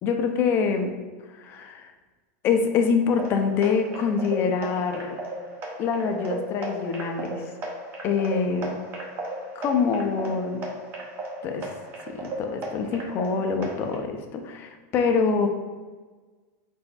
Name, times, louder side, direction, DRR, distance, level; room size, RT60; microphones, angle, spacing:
voice 1, 0.0-1.0 1.3-1.9 2.4-5.2 5.8-7.4 8.0-8.7 9.6-10.7 11.4-11.7 12.1-15.5, left 5 dB, 25° left, 5 dB, 0.4 m, -25 dB
sound 1, 3.1-14.0, right 1 dB, 25° right, 0.6 m, -36 dB
4.4 x 4.0 x 2.2 m, 1.4 s
supercardioid pair, 165°, 9 cm